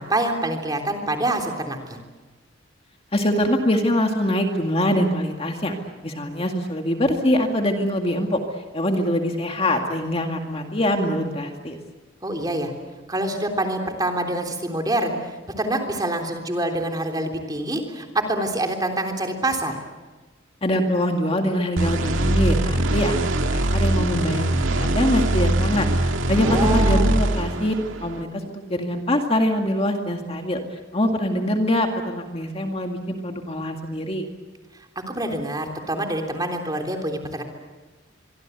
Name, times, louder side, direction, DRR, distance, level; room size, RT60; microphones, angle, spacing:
voice 1, 0.0-2.0 12.2-12.7 13.1-15.2 15.6-19.8 26.4-27.1 35.1-37.4, right 1 dB, 20° right, 3 dB, 3.4 m, -26 dB
voice 2, 3.1-5.7 6.0-8.4 8.7-11.8 20.6-27.7 28.0-30.6 30.9-34.3, left 1 dB, 30° left, 3 dB, 2.1 m, -23 dB
sound 1, 21.8-28.2, right 1 dB, 85° right, 2.0 m, -22 dB
25.0 x 24.5 x 8.1 m, 1.3 s
head